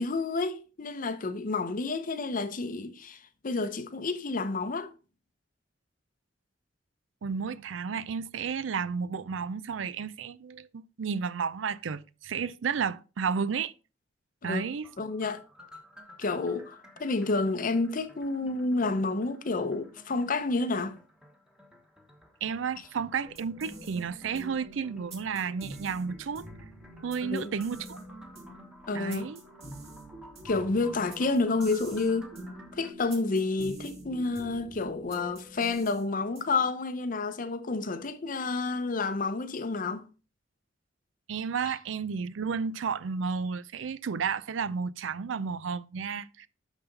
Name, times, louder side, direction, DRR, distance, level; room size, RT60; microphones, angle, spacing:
voice 1, 0.0-4.9 14.4-14.6 15.0-15.4 16.2-21.0 27.2-27.5 28.9-29.3 30.4-32.3 32.7-40.1, left 3 dB, 45° left, 0.6 m, -30 dB
voice 2, 7.2-13.7 14.4-14.9 22.4-26.5 27.0-28.0 28.9-29.4 41.3-46.5, right 6 dB, 90° right, 0.5 m, -32 dB
sound 1, 14.6-32.9, left 1 dB, 5° right, 1.1 m, -54 dB
sound 2, 23.2-36.7, right 1 dB, 35° right, 2.4 m, -46 dB
11.5 x 4.1 x 3.8 m
head